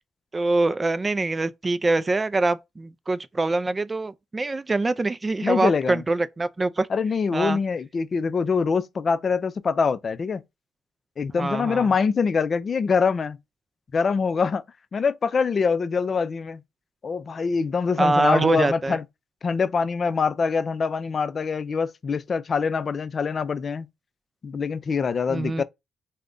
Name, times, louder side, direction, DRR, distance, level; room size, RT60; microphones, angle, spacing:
voice 1, 0.3-6.9 7.3-7.6 11.4-11.9 18.0-19.0 25.3-25.6, right 2 dB, 25° right, 0.3 m, -24 dB
voice 2, 5.4-6.0 6.9-10.4 11.2-13.4 13.9-14.6 14.9-16.6 17.0-19.0 19.4-23.9 24.4-25.6, left 5 dB, 50° left, 0.4 m, -24 dB
2.4 x 2.1 x 3.6 m
supercardioid pair, 65°, 0 cm